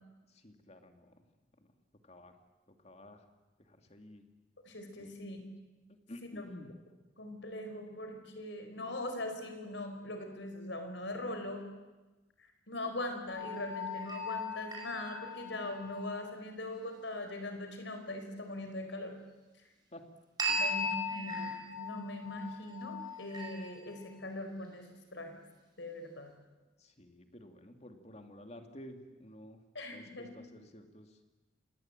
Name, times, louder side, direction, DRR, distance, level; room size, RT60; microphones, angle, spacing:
voice 1, 0.3-1.2 2.0-2.4 2.8-3.2 3.7-4.2 5.0-5.1 6.1-6.7 19.9-20.0 20.5-20.6 26.8-29.6 29.9-31.2, left 1 dB, 35° left, 6 dB, 2.4 m, -51 dB
voice 2, 4.6-5.4 7.2-11.6 12.7-19.2 20.6-25.3 25.8-26.3 29.7-30.3, left 1 dB, 70° left, 6 dB, 4.8 m, -41 dB
sound 1, 13.3-16.1 20.4-24.0, left 1 dB, 20° right, 5.2 m, -38 dB
27.0 x 19.5 x 9.0 m, 1.2 s
head